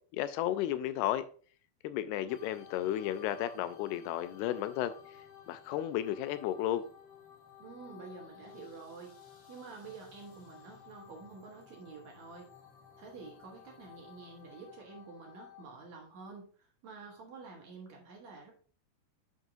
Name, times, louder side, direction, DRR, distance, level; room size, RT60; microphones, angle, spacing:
voice 1, 0.1-1.3 1.8-4.9 5.5-6.9, left 12 dB, 85° left, 12 dB, 2.5 m, -33 dB
sound 1, 2.3-15.6, left 8 dB, 55° left, 3.9 m, -55 dB
voice 2, 7.6-9.1 9.5-12.5 13.0-18.5, right 4 dB, 60° right, 0 dB, 2.2 m, -49 dB
9.2 x 6.1 x 2.6 m, 0.42 s
omnidirectional pair, 4.6 m